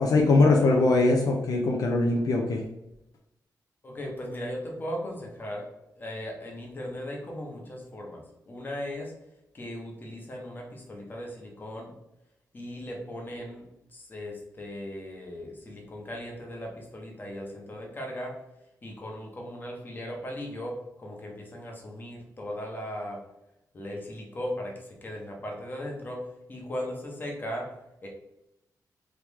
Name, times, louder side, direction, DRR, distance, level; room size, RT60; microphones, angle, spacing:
voice 1, 0.0-2.6, left 2 dB, 65° left, 0 dB, 0.5 m, -21 dB
voice 2, 3.8-5.7 6.0-9.1 9.5-11.9 12.5-18.4 18.8-23.2 23.7-27.7 28.0-28.1, equal, 30° left, 0 dB, 0.9 m, -37 dB
3.2 x 3.1 x 3.4 m, 0.86 s
wide cardioid pair, 150°, 7 cm